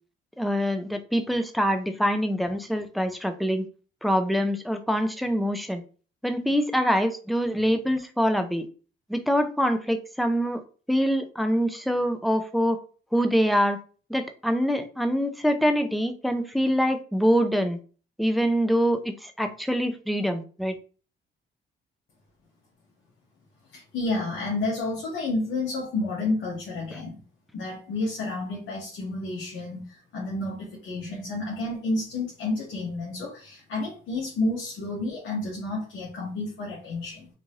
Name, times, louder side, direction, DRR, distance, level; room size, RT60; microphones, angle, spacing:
voice 1, 0.4-3.6 4.0-5.8 6.2-8.7 9.1-10.6 10.9-12.8 13.1-13.8 14.1-17.8 18.2-20.7, equal, ahead, 7 dB, 0.5 m, -24 dB
voice 2, 23.7-27.2 27.5-37.3, left 2 dB, 75° left, -4 dB, 1.3 m, -30 dB
3.8 x 2.5 x 3.1 m, 0.38 s
cardioid pair, 90°, 20 cm